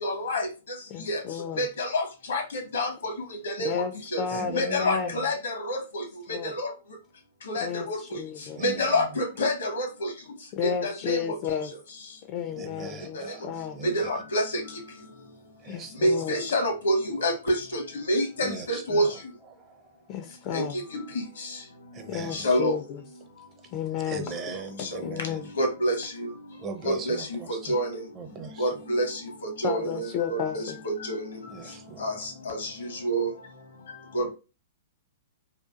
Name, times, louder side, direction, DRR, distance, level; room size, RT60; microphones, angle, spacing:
voice 1, 0.0-0.5 1.1-1.2 1.6-3.1 3.4-3.7 4.1-4.2 4.5-6.0 6.3-6.7 7.5-8.0 8.6-10.1 10.6-11.4 13.1-13.3 13.8-14.6 16.0-17.8 18.1-19.1 20.5-21.0 21.4-21.5 22.3-22.8 24.3-24.4 24.8-24.9 25.6-26.3 26.8-28.0 28.6-31.3 32.0-33.3 34.1-34.3, equal, 75° left, 0.8 m, -28 dB
voice 2, 0.9-1.7 3.6-5.2 6.3-6.5 7.6-8.6 10.5-11.7 12.3-13.8 15.7-16.4 20.1-20.8 22.1-23.0 23.7-24.3 25.0-25.5 29.6-30.8, left 8 dB, 40° left, 0.3 m, -32 dB
voice 3, 4.3-5.3 8.5-9.2 12.5-13.4 13.7-14.2 15.6-16.3 18.4-19.2 19.5-20.0 21.9-22.5 24.0-25.5 26.6-27.8 28.1-28.8 31.5-32.3, right 4 dB, 30° right, 0.5 m, -40 dB
2.8 x 2.4 x 2.4 m
hypercardioid pair, 115°, 0 cm